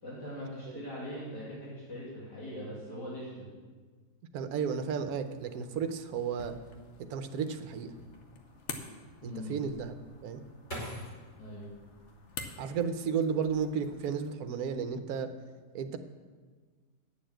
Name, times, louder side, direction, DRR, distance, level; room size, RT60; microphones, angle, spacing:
voice 1, 0.0-3.5 9.2-9.6 11.4-11.7, equal, 80° left, -8 dB, 3.2 m, -41 dB
voice 2, 4.3-6.6 7.0-7.9 9.2-9.9 10.2-10.4 12.6-15.3 15.7-16.0, right 6 dB, 70° right, 8 dB, 1.2 m, -33 dB
sound 1, 5.2-14.4, left 4 dB, 50° left, 1.1 m, -49 dB
sound 2, 9.7-12.8 13.3-14.0 14.4-14.8, equal, 30° left, 2.6 m, -45 dB
9.3 x 6.9 x 7.5 m, 1.5 s
omnidirectional pair, 1.8 m